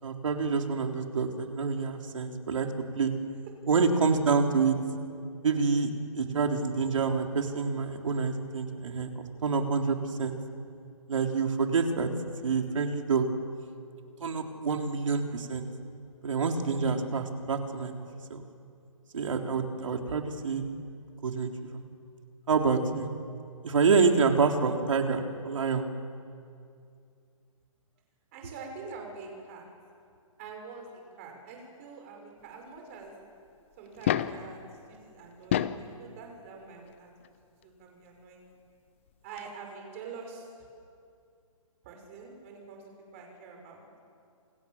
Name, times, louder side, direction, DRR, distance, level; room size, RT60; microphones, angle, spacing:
voice 1, 0.0-2.7 3.0-3.1 3.7-4.8 5.4-10.3 11.1-12.1 12.4-13.3 14.2-15.7 16.2-18.0 18.3-18.4 19.1-20.6 21.2-21.8 22.5-23.1 23.6-25.9, right 5 dB, 65° right, 3 dB, 3.6 m, -27 dB
voice 2, 28.3-29.6 30.4-33.1 33.8-37.1 37.6-38.5 39.2-40.5 41.8-42.8 43.1-43.8, right 4 dB, 25° right, 2 dB, 5.6 m, -45 dB
sound 1, 33.9-34.5 35.3-35.9 37.2-37.3 39.1-39.2 39.4-39.5, left 10 dB, 20° left, 0.7 m, -28 dB
28.5 x 28.5 x 7.3 m, 2.4 s
hypercardioid pair, 175°, 18 cm